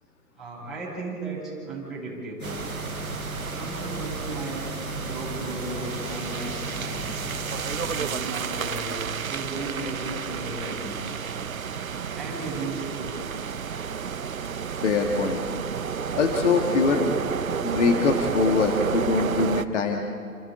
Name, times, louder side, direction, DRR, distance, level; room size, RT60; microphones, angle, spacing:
voice 1, 0.4-2.6 3.4-4.6 5.0-7.1 7.8-11.2 12.1-13.1, right 2 dB, ahead, -9 dB, 7.0 m, -35 dB
sound 1, 2.4-8.0, left 2 dB, 70° left, 5.2 m, -38 dB
sound 2, 2.4-19.7, right 7 dB, 60° right, 1.0 m, -31 dB
voice 2, 14.8-15.4 16.2-17.2 17.6-20.0, left 4 dB, 50° left, 2 dB, 2.1 m, -23 dB
30.0 x 29.0 x 3.9 m, 2.5 s
figure-of-eight pair, 125°, 47 cm